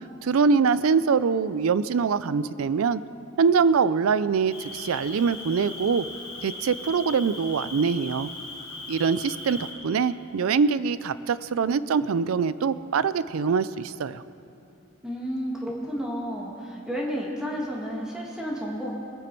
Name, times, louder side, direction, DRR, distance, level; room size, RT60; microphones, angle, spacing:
voice 1, 0.2-3.0 3.4-6.1 6.4-8.3 8.9-14.2, right 5 dB, 85° right, 16 dB, 0.4 m, -23 dB
Cricket, 4.5-9.7, left 2 dB, 25° left, 2.8 m, -39 dB
voice 2, 15.0-18.9, equal, 5° right, -3 dB, 1.5 m, -31 dB
21.0 x 9.2 x 4.4 m, 2.7 s
head